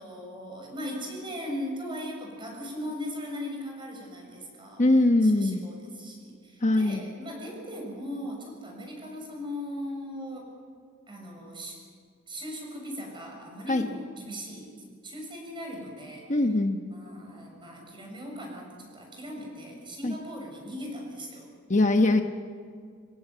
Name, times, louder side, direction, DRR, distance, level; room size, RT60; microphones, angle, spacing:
voice 1, 0.0-4.8 5.2-10.5 11.1-11.8 12.3-14.7 15.0-16.3 16.9-21.5, equal, 25° right, 1 dB, 6.8 m, -38 dB
voice 2, 4.8-5.6 6.6-7.0 13.7-13.8 16.3-16.8 20.0-20.1 21.7-22.2, left 2 dB, 35° left, 5 dB, 1.0 m, -22 dB
27.5 x 16.0 x 9.2 m, 2.1 s
head